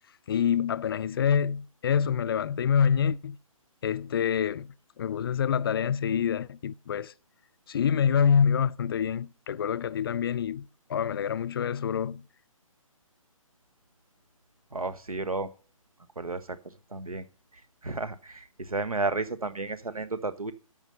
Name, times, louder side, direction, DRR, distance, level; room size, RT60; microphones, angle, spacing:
voice 1, 0.3-3.4 3.8-7.1 7.7-12.2, left 7 dB, 40° left, 0.4 m, -26 dB
voice 2, 14.7-15.5 16.2-16.6 16.9-17.3 17.8-20.5, right 3 dB, 90° right, 1.3 m, -32 dB
13.5 x 5.4 x 6.6 m
figure-of-eight pair, 140°, 18 cm